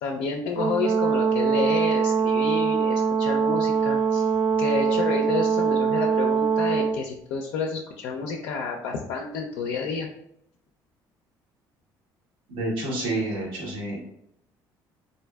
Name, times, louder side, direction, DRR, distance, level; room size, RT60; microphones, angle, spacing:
voice 1, 0.0-4.3 4.6-10.1, left 5 dB, 80° left, 1 dB, 0.4 m, -30 dB
Brass instrument, 0.6-6.9, right 6 dB, 35° right, 0.6 m, -23 dB
voice 2, 12.5-14.0, right 2 dB, 85° right, -3 dB, 1.0 m, -29 dB
3.4 x 2.6 x 2.2 m, 0.76 s
supercardioid pair, 75°, 9 cm